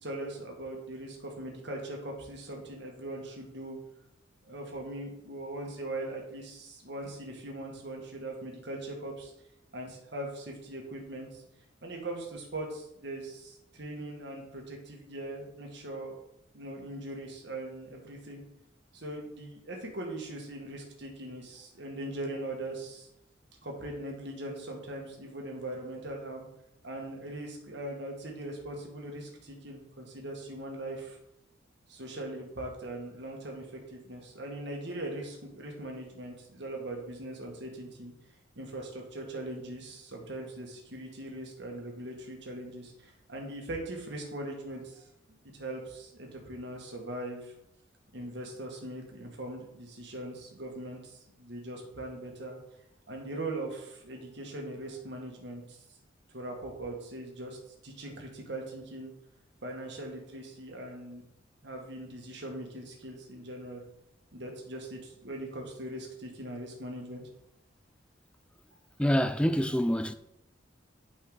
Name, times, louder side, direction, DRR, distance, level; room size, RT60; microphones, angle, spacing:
voice 1, 0.0-3.8 4.4-9.3 9.7-11.4 11.8-16.2 16.5-18.4 18.9-23.1 23.6-26.5 26.8-31.2 31.9-38.1 38.5-45.1 45.5-47.5 48.1-52.6 53.1-55.8 56.3-57.6 57.8-59.1 59.6-61.2 61.6-63.8 64.3-67.2, right 1 dB, 65° right, 1.8 m, -40 dB
voice 2, 69.0-70.1, equal, 5° left, 0.4 m, -26 dB
9.1 x 5.4 x 4.0 m
head